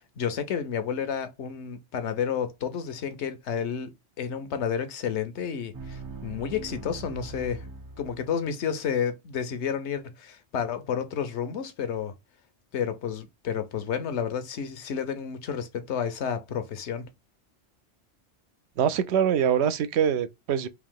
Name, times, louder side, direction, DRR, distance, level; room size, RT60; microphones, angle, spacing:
voice 1, 0.2-3.9 4.2-7.6 8.0-12.1 12.7-17.0, left 7 dB, 70° left, 1.0 m, -31 dB
sound 1, 5.7-8.5, right 4 dB, 30° right, 0.4 m, -41 dB
voice 2, 18.8-20.7, right 8 dB, 70° right, 0.8 m, -24 dB
3.6 x 2.8 x 3.6 m
omnidirectional pair, 1.3 m